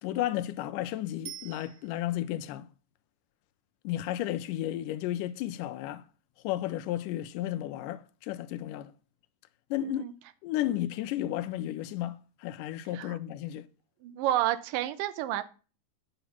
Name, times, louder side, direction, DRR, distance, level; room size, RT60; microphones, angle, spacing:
voice 1, 0.0-2.7 3.8-6.0 6.4-8.9 9.7-10.0 10.4-13.7, left 13 dB, 80° left, 2.0 m, -33 dB
Bicycle bell, 1.3-2.4 11.4-11.5, right 11 dB, 65° right, 1.7 m, -46 dB
voice 2, 9.8-10.1 12.9-13.2 14.0-15.4, right 13 dB, 80° right, 2.3 m, -30 dB
8.9 x 5.1 x 5.9 m
omnidirectional pair, 3.9 m